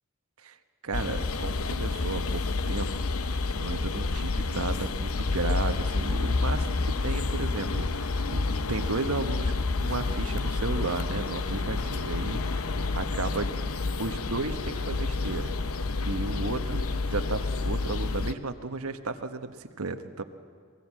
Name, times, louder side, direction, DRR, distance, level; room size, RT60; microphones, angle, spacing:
voice 1, 0.8-2.9 3.2-3.3 3.6-9.5 9.8-15.6 16.0-20.2, right 3 dB, 90° right, 8 dB, 1.2 m, -34 dB
sound 1, 0.9-18.3, left 3 dB, 75° left, 0.9 m, -29 dB
25.0 x 19.0 x 7.5 m, 2.1 s
head